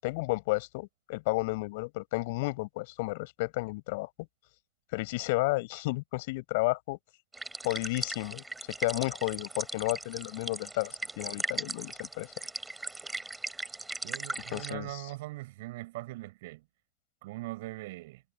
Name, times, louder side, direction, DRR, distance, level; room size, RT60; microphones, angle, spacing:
voice 1, 0.0-4.1 4.9-7.0 7.6-8.4 8.8-12.3 14.5-15.1, left 23 dB, 60° left, 7.0 m, -32 dB
sound 1, 7.3-14.7, right 2 dB, 10° right, 5.6 m, -38 dB
voice 2, 14.0-16.6 17.2-18.2, right 19 dB, 65° right, 6.2 m, -41 dB
hypercardioid pair, 90°, 0 cm